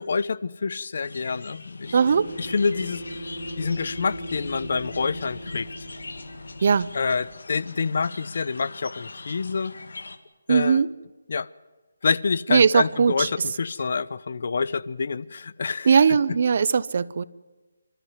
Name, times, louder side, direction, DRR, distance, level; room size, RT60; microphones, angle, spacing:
voice 1, 0.0-2.0 2.4-3.0 3.6-5.7 6.9-9.7 10.5-10.8 11.3-11.5 12.0-16.2, left 5 dB, 50° left, 18 dB, 0.7 m, -27 dB
sound 1, 1.0-10.2, left 3 dB, 75° left, 2.0 m, -42 dB
sound 2, 1.8-7.3, equal, 30° left, 6.2 m, -38 dB
voice 2, 1.9-2.3 6.6-6.9 10.5-10.9 12.5-13.3 15.9-17.2, right 6 dB, 45° right, 18 dB, 0.7 m, -19 dB
28.0 x 13.5 x 9.5 m, 1.2 s
hypercardioid pair, 170°, 0 cm